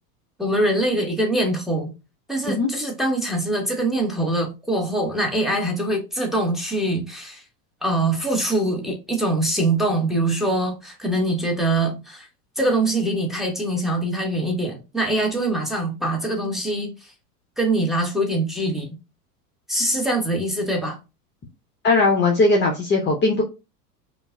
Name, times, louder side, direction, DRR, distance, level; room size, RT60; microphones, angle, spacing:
voice 1, 0.4-1.9 2.3-7.4 7.8-12.3 12.6-17.1 17.6-19.0 19.7-21.0, right 1 dB, ahead, 1.4 m, -23 dB
voice 2, 21.8-23.4, left 3 dB, 25° left, 0.8 m, -19 dB
5.2 x 2.5 x 2.2 m
hypercardioid pair, 95°, 48 cm